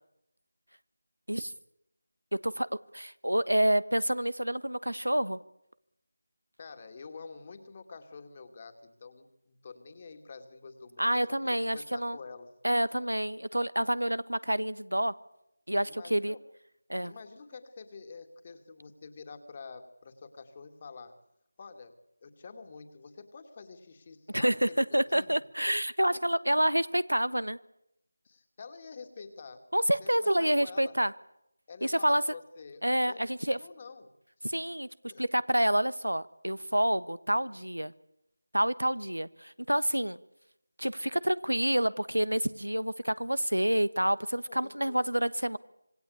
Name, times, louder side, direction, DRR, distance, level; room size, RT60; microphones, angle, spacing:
voice 1, 2.9-5.4 11.0-12.2 12.6-15.1 15.7-16.4 16.9-17.1 24.3-27.6 29.7-31.1 31.8-32.2 32.8-33.6 34.4-34.9 35.2-37.9 38.5-40.2 40.8-45.6, right 1 dB, 90° right, 17 dB, 1.3 m, -28 dB
voice 2, 6.6-12.5 15.8-16.4 17.0-21.1 21.6-25.4 26.1-26.2 28.2-29.6 30.0-31.0 31.7-34.1 35.1-35.2 44.5-45.0, left 4 dB, 30° left, 7 dB, 2.4 m, -48 dB
26.0 x 21.5 x 8.5 m, 0.81 s
figure-of-eight pair, 165°, 0 cm